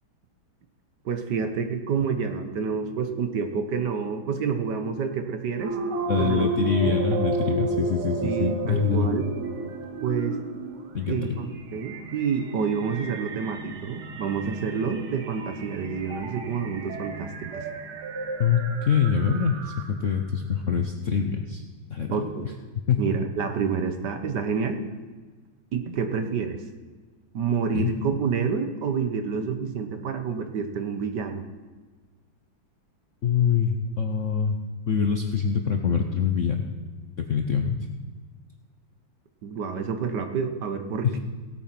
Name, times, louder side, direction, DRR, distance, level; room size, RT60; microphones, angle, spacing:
voice 1, 1.0-5.8 6.2-6.5 6.8-6.9 8.2-9.3 10.0-10.4 11.1-17.6 22.1-22.5 23.0-24.8 25.7-26.6 27.3-31.4 39.4-41.2, right 6 dB, 60° right, 8 dB, 1.4 m, -28 dB
sound 1, 5.6-20.2, right 3 dB, 90° right, 2.1 m, -32 dB
voice 2, 6.1-9.1 10.9-11.4 18.4-21.6 21.9-22.5 22.9-23.1 27.7-27.9 33.2-34.6 34.9-36.7 37.2-37.8 41.0-41.2, left 7 dB, 60° left, 5 dB, 0.8 m, -25 dB
16.5 x 8.6 x 5.9 m, 1.4 s
omnidirectional pair, 2.3 m